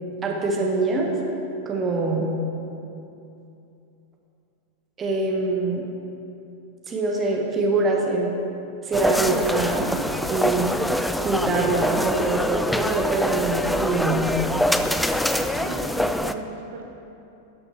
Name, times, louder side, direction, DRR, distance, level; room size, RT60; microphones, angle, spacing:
voice 1, 0.2-1.1 1.6-2.3 5.0-5.8 6.9-8.3 8.8-10.9 11.2-14.3, right 3 dB, 25° right, 0 dB, 1.4 m, -24 dB
sound 1, 8.9-16.3, left 1 dB, 5° left, 0.3 m, -24 dB
voice 2, 15.4-16.9, right 5 dB, 65° right, 0 dB, 0.8 m, -38 dB
12.0 x 6.2 x 4.5 m, 2.8 s
figure-of-eight pair, 90°, 0 cm